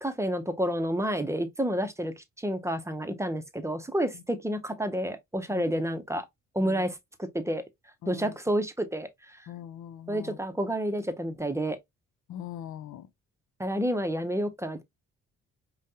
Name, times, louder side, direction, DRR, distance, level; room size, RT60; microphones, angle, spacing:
voice 1, 0.0-6.3 6.5-7.6 8.1-9.4 10.1-11.8 13.6-14.8, equal, 10° right, 0.6 m, -30 dB
voice 2, 8.0-8.4 9.5-10.4 12.3-13.1, left 10 dB, 70° left, 0.6 m, -42 dB
5.1 x 2.2 x 2.8 m
cardioid pair, 90°, 30 cm